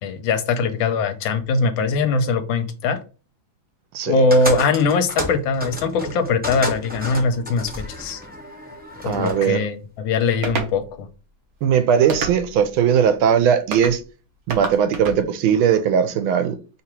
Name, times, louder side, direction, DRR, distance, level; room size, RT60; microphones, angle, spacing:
voice 1, 0.0-3.0 4.1-8.2 9.0-11.1, left 4 dB, 75° left, 1.4 m, -21 dB
sound 1, 4.3-9.4, equal, 15° right, 0.4 m, -31 dB
voice 2, 9.0-9.6 11.6-14.0 14.5-16.8, right 8 dB, 85° right, 1.5 m, -19 dB
sound 2, 10.4-10.7 12.1-12.7 13.7-14.0 14.5-15.2, right 5 dB, 60° right, 1.0 m, -27 dB
3.5 x 2.9 x 4.5 m
omnidirectional pair, 2.2 m